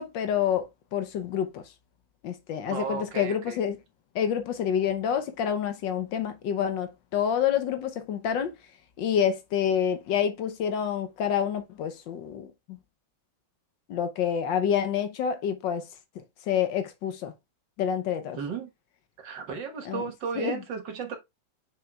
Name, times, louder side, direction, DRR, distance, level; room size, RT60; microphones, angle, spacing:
voice 1, 0.0-1.6 2.2-3.8 4.1-8.5 9.0-12.5 13.9-15.9 16.5-17.3 17.8-18.4 19.8-20.0 20.3-20.6, left 8 dB, 75° left, 1.5 m, -28 dB
voice 2, 2.7-3.6 18.4-18.7 19.2-21.2, right 5 dB, 70° right, 2.0 m, -34 dB
7.1 x 6.0 x 2.3 m
omnidirectional pair, 2.1 m